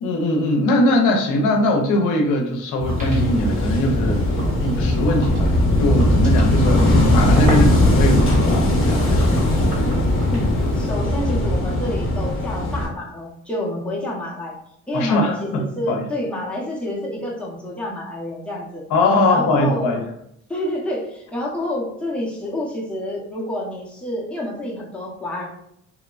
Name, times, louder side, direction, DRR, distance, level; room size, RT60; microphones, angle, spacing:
voice 1, 0.0-5.5 5.8-9.4 14.9-16.0 18.9-20.0, left 1 dB, 85° left, 2 dB, 0.6 m, -21 dB
sound 1, 2.8-10.9, left 1 dB, 25° right, 1.5 m, -26 dB
Wind / Waves surf, 2.9-12.9, left 1 dB, 45° left, 0.9 m, -19 dB
voice 2, 10.3-14.5 14.9-18.8 19.3-20.0 20.5-25.4, left 1 dB, 5° left, -5 dB, 0.7 m, -28 dB
2.8 x 2.1 x 2.3 m, 0.75 s
cardioid pair, 90°, 30 cm